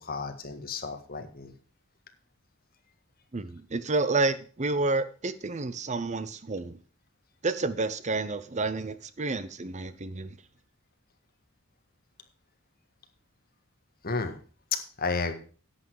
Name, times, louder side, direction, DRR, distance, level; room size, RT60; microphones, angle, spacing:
voice 1, 0.0-1.5 14.0-14.4 14.7-15.3, left 4 dB, 45° left, 7 dB, 1.7 m, -32 dB
voice 2, 3.3-6.8 7.4-10.3, right 3 dB, 35° right, 14 dB, 0.7 m, -30 dB
11.0 x 8.4 x 4.8 m, 0.38 s
head